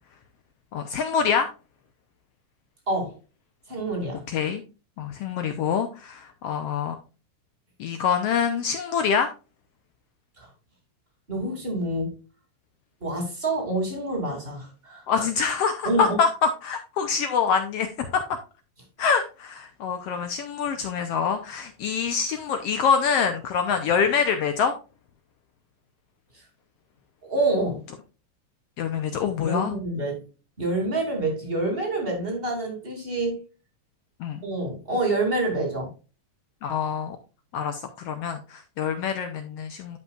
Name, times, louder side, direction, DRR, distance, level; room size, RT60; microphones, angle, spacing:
voice 1, 0.7-1.5 4.3-4.6 5.0-7.0 7.8-9.3 15.1-17.9 18.1-18.4 19.0-24.7 28.8-29.7 34.2-34.4 36.6-37.2 37.5-40.0, left 6 dB, 75° left, 7 dB, 1.4 m, -25 dB
voice 2, 2.9-3.2 3.7-4.2 10.4-10.5 11.3-12.1 13.0-15.2 15.8-16.2 27.2-27.8 29.4-30.2 30.6-33.4 34.4-35.9, right 2 dB, 20° right, 1 dB, 2.6 m, -27 dB
12.0 x 5.4 x 2.4 m, 0.32 s
omnidirectional pair, 3.6 m